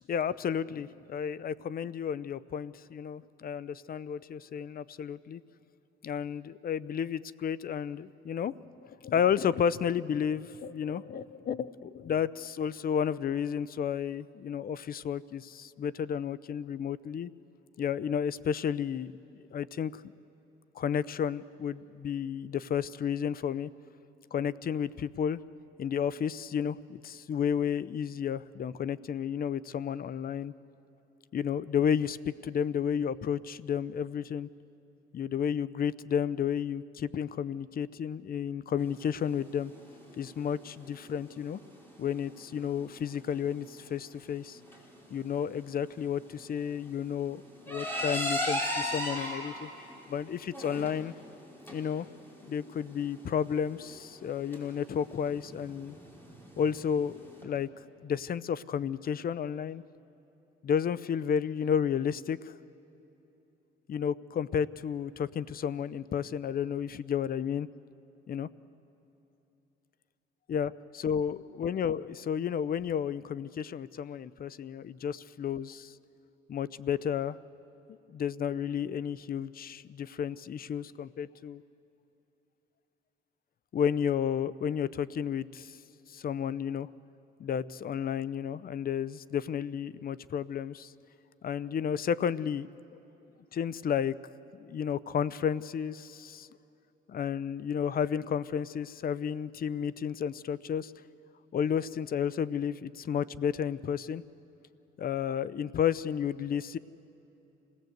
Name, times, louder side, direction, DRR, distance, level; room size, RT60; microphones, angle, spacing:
voice 1, 0.1-5.4 6.0-8.5 8.8-17.3 17.8-19.1 19.5-20.0 20.7-23.7 24.3-25.4 25.8-30.5 31.3-34.5 35.1-39.7 40.2-41.6 42.0-44.6 45.1-49.7 50.1-51.1 51.7-52.1 52.4-55.9 56.6-57.7 58.0-59.8 60.6-62.5 63.9-67.7 68.3-68.5 70.5-75.9 76.5-77.4 78.1-81.6 83.7-85.8 86.1-86.9 87.4-90.9 91.4-92.7 93.5-94.1 94.5-96.5 97.1-100.9 101.5-104.2 105.0-106.8, left 8 dB, 50° left, 19 dB, 0.6 m, -32 dB
sound 1, 38.8-57.4, equal, 10° left, 5.6 m, -39 dB
26.5 x 17.5 x 7.9 m, 3.0 s
cardioid pair, 90°, 20 cm